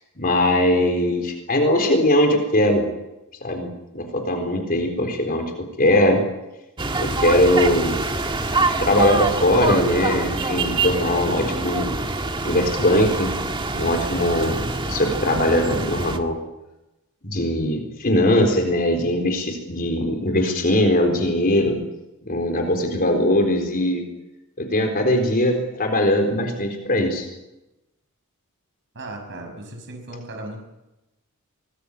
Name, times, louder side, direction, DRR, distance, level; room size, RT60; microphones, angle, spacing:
voice 1, 0.2-2.8 3.4-6.2 7.0-8.0 8.8-12.0 12.4-13.3 13.7-16.4 17.2-21.8 22.3-24.0 24.6-27.3, left 1 dB, 40° left, 4 dB, 4.1 m, -20 dB
sound 1, 6.8-16.2, right 3 dB, 20° right, 1.7 m, -25 dB
voice 2, 28.9-30.6, right 1 dB, 55° right, 3 dB, 6.0 m, -36 dB
24.5 x 20.0 x 8.4 m, 0.96 s
head